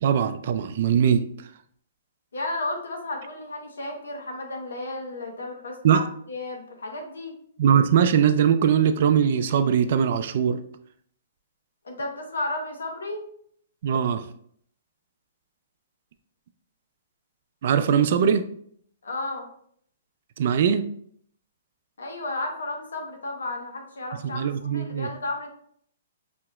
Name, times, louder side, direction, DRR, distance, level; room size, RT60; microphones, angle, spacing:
voice 1, 0.0-1.3 5.8-6.0 7.6-10.6 13.8-14.3 17.6-18.5 20.4-20.9 24.3-25.1, right 8 dB, 60° right, 10 dB, 0.3 m, -21 dB
voice 2, 2.3-7.3 11.8-13.2 19.0-19.5 22.0-25.5, left 2 dB, 85° left, 3 dB, 0.9 m, -33 dB
5.0 x 2.8 x 2.3 m, 0.64 s
hypercardioid pair, 135°, 0 cm